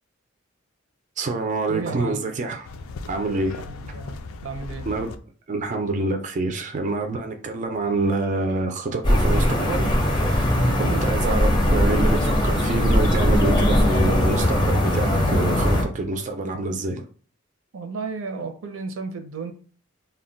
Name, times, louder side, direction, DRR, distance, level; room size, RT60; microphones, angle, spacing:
voice 1, 1.2-2.7 3.1-3.6 4.9-5.1 5.5-17.1, right 3 dB, 40° right, 0.3 m, -27 dB
voice 2, 1.7-2.2 3.6-4.9 10.6-11.0 17.7-19.5, right 4 dB, 85° right, 0.6 m, -33 dB
sound 1, 2.6-5.2, left 3 dB, 85° left, 0.3 m, -37 dB
sound 2, 9.0-15.8, left 1 dB, 25° left, 0.5 m, -20 dB
2.2 x 2.1 x 3.7 m
head